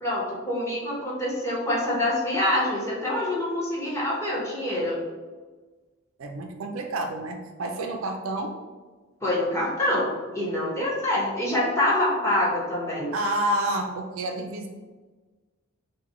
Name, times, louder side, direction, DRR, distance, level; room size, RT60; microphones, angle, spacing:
voice 1, 0.0-5.0 9.2-13.1, left 1 dB, 15° left, -6 dB, 1.1 m, -26 dB
voice 2, 6.2-8.6 13.1-14.7, right 1 dB, 65° right, 4 dB, 0.4 m, -29 dB
5.9 x 2.2 x 3.1 m, 1.3 s
head